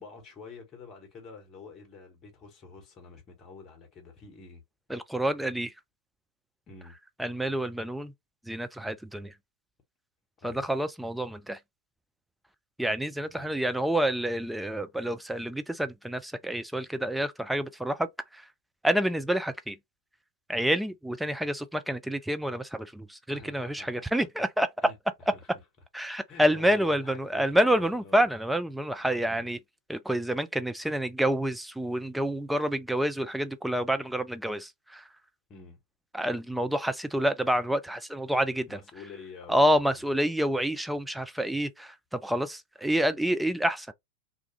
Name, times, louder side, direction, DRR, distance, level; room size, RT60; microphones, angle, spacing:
voice 1, 0.0-4.6 6.7-7.0 10.4-10.6 13.3-13.6 23.3-24.1 24.8-25.0 25.3-25.4 26.3-28.3 29.3-29.5 35.5-35.8 38.7-40.0, left 4 dB, 30° left, 1.1 m, -48 dB
voice 2, 4.9-5.7 7.2-8.1 8.4-9.3 10.4-11.6 12.8-18.5 18.8-19.8 20.5-24.7 25.9-29.6 29.9-35.1 36.1-38.8 39.5-43.9, equal, 5° right, 0.3 m, -28 dB
2.5 x 2.3 x 2.9 m
figure-of-eight pair, 90°, 0 cm